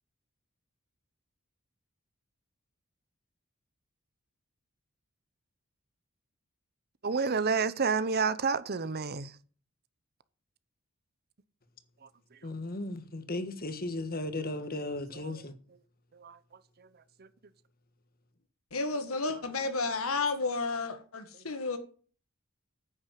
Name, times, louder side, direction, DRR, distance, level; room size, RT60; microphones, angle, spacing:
voice 1, 7.0-9.3 16.2-16.3, right 5 dB, 50° right, 0.8 m, -29 dB
voice 2, 12.4-15.5, left 2 dB, 45° left, 1.5 m, -36 dB
voice 3, 18.7-21.8, left 3 dB, 80° left, 1.8 m, -32 dB
9.7 x 8.6 x 7.5 m
head